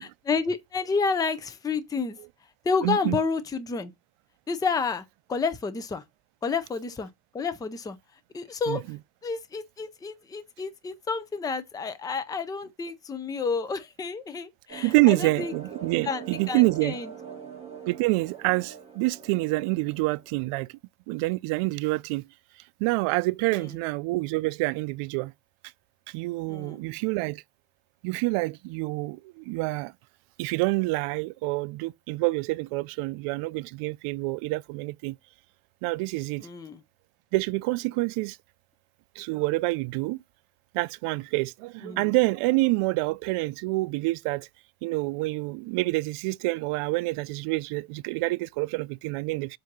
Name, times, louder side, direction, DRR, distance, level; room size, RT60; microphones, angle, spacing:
voice 1, 0.3-2.2 2.6-3.9 4.5-6.0 6.4-7.1 7.3-8.0 8.3-8.8 9.2-15.5 16.0-17.1 23.5-23.7 26.5-26.8 36.4-36.8 41.8-42.1, left 5 dB, 10° left, 0.4 m, -30 dB
voice 2, 2.8-3.2 8.7-8.8 14.8-17.0 17.9-20.7 21.1-22.3 22.8-25.3 26.1-27.4 28.0-29.9 30.4-35.1 35.8-36.5 37.3-38.4 39.2-40.2 40.7-44.5 44.8-49.6, right 22 dB, 85° right, 0.6 m, -27 dB
sound 1, 14.7-20.4, right 7 dB, 10° right, 1.6 m, -42 dB
7.6 x 2.7 x 5.9 m
cardioid pair, 170°, 49 cm